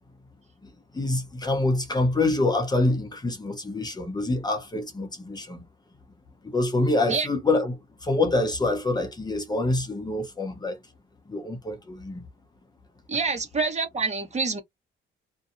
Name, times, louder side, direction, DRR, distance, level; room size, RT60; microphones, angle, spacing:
voice 1, 0.9-5.6 6.4-10.8 11.3-12.2, left 2 dB, 20° left, 0.8 m, -26 dB
voice 2, 13.1-14.6, right 4 dB, 35° right, 1.1 m, -26 dB
2.7 x 2.2 x 2.5 m
cardioid pair, 90°, 20 cm